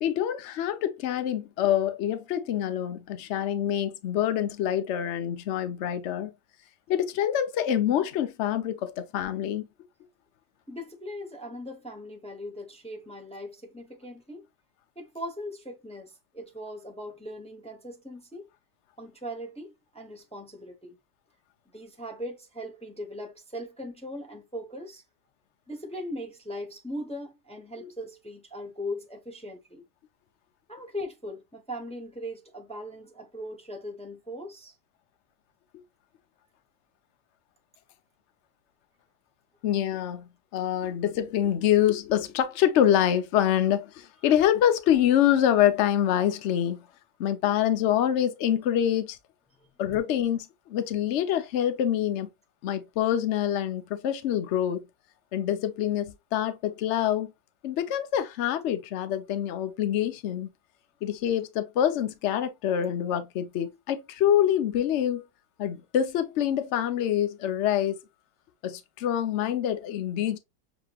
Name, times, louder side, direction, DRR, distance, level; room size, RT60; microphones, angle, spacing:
voice 1, 0.0-6.3 6.9-9.7 27.8-27.9 39.6-46.8 47.2-49.2 49.8-52.3 52.6-54.8 55.3-57.3 57.6-60.5 61.0-65.3 65.6-68.0 68.6-70.4, left 10 dB, 65° left, 0.7 m, -26 dB
voice 2, 10.7-14.4 15.0-18.5 19.0-21.0 21.7-25.0 25.7-29.8 30.7-34.8 49.6-49.7, equal, 5° left, 0.5 m, -39 dB
7.0 x 3.0 x 2.4 m
omnidirectional pair, 2.0 m